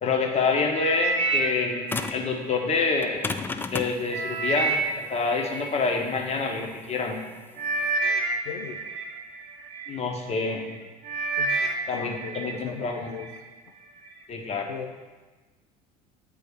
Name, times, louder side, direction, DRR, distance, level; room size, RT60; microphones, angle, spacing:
voice 1, 0.0-3.2 3.7-7.2 9.9-10.6 11.9-13.1 14.3-14.7, left 4 dB, 30° left, 1 dB, 1.1 m, -27 dB
sound 1, 0.7-3.1 3.6-6.5 7.2-7.3 7.6-9.9 10.5-10.7 11.0-12.6 12.9-13.4 14.0-14.1, right 3 dB, 65° right, 0.9 m, -29 dB
sound 2, 1.9-2.3 3.0-7.9, left 4 dB, 10° left, 0.3 m, -33 dB
voice 2, 8.5-8.9 11.4-11.6 11.9-13.3 14.7-15.0, left 7 dB, 85° left, 3 dB, 0.4 m, -38 dB
8.6 x 3.7 x 3.5 m, 1.3 s
figure-of-eight pair, 65°, 20 cm